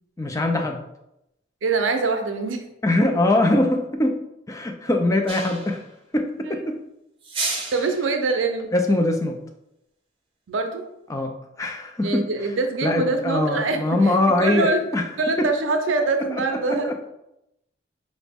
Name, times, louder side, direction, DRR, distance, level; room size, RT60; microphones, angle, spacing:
voice 1, 0.2-0.8 2.8-4.2 4.5-5.8 6.1-6.8 8.7-9.4 11.1-11.3 11.6-12.2 12.8-15.0 15.4-15.5 16.3-16.4 16.7-17.0, left 2 dB, 15° left, 4 dB, 0.3 m, -22 dB
voice 2, 1.6-2.6 6.4-6.7 7.7-8.7 10.5-10.8 12.0-14.8 15.2-16.9, right 3 dB, 75° right, 5 dB, 0.5 m, -24 dB
sound 1, 5.3-5.8 7.2-8.0, right 3 dB, 30° right, 0.7 m, -30 dB
4.9 x 2.0 x 3.4 m, 0.85 s
head